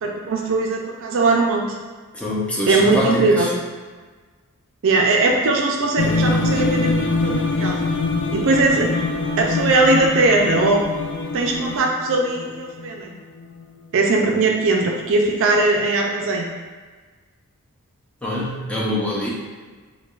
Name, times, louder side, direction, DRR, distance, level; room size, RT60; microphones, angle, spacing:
voice 1, 0.0-1.8 2.7-3.5 4.8-7.8 8.3-8.9 9.4-10.8 11.3-13.2 13.9-16.5, right 3 dB, 60° right, 1 dB, 0.4 m, -19 dB
voice 2, 2.2-3.2 18.2-19.3, left 1 dB, 5° left, -6 dB, 0.6 m, -23 dB
sound 1, 6.0-13.6, left 3 dB, 50° left, 0.3 m, -24 dB
4.6 x 2.2 x 2.4 m, 1.4 s
head